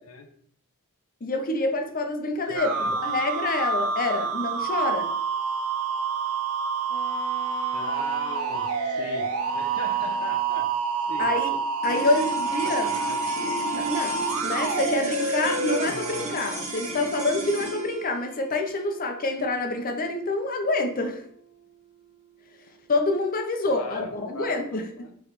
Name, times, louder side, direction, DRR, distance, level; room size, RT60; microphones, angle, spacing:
voice 1, 1.2-2.7 3.0-5.1 11.2-11.5 11.8-12.9 13.7-14.2 14.4-21.2 22.9-25.1, left 2 dB, 40° left, 5 dB, 0.7 m, -27 dB
voice 2, 2.4-3.0 7.7-10.7 11.1-11.3 12.0-12.3 12.6-13.2 23.6-25.1, left 3 dB, 80° left, 5 dB, 0.5 m, -39 dB
sound 1, 2.6-16.3, right 5 dB, 70° right, 0.5 m, -28 dB
sound 2, 6.9-10.8, right 6 dB, 10° left, 1.2 m, -43 dB
sound 3, 11.8-22.3, right 2 dB, 30° right, 1.2 m, -35 dB
4.8 x 3.2 x 3.0 m, 0.64 s
head